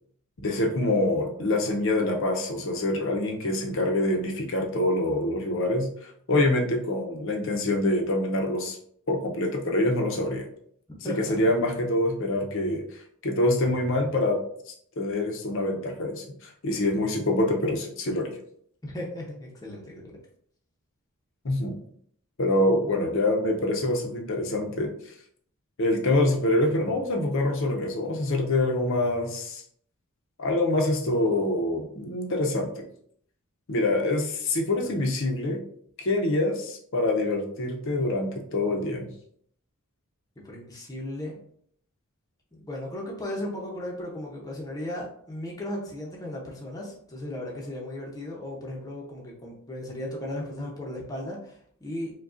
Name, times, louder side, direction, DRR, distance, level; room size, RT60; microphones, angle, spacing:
voice 1, 0.4-5.9 6.3-8.8 9.1-10.5 11.0-12.8 13.2-14.4 15.0-18.4 21.4-21.8 22.4-24.9 25.8-29.6 30.4-32.8 33.7-35.6 36.0-39.1, left 1 dB, 60° left, 2 dB, 0.7 m, -25 dB
voice 2, 11.0-11.4 18.8-20.1 34.8-35.0 40.4-41.4 42.5-52.1, left 1 dB, 15° left, -2 dB, 0.7 m, -36 dB
4.8 x 2.3 x 2.5 m, 0.64 s
head